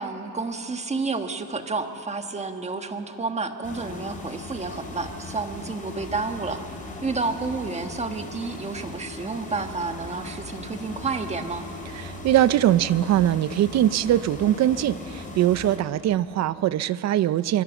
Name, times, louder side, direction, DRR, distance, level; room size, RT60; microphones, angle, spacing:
voice 1, 0.0-6.6 7.0-11.6, right 4 dB, 20° right, 6 dB, 1.4 m, -30 dB
sound 1, 3.6-15.8, left 2 dB, 20° left, 3.9 m, -38 dB
voice 2, 11.9-17.6, right 12 dB, 50° right, 16 dB, 0.6 m, -22 dB
25.0 x 23.5 x 7.1 m, 2.8 s
cardioid pair, 135°, 35 cm